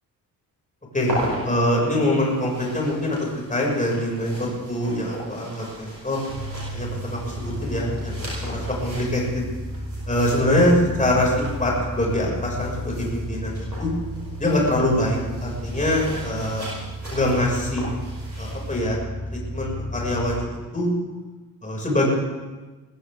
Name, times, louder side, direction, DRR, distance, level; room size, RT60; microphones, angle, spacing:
sound 1, 1.0-18.7, equal, 85° right, 4.8 m, -38 dB
voice 1, 1.4-3.2 3.5-6.3 6.7-9.4 10.1-13.9 14.4-16.7 17.1-17.8 18.4-19.0 19.5-20.9 21.6-22.0, left 1 dB, 15° left, -2 dB, 6.4 m, -24 dB
sound 2, 6.3-20.3, equal, 70° right, 3.5 m, -33 dB
21.0 x 14.5 x 3.8 m, 1.2 s
figure-of-eight pair, 45°, 50 cm